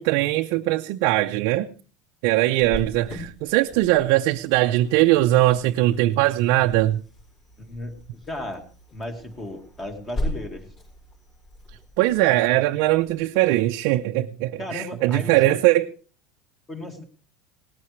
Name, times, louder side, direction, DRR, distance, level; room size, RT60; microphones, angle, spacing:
voice 1, 0.0-1.7 2.2-7.0 12.0-15.9, right 16 dB, 55° right, 0.6 m, -20 dB
Cricket, 2.6-14.0, left 1 dB, 35° left, 5.2 m, -38 dB
voice 2, 7.6-8.7 8.9-10.7 14.6-15.6 16.7-17.0, left 1 dB, 15° left, 1.9 m, -35 dB
18.0 x 14.5 x 3.2 m
supercardioid pair, 170°, 0 cm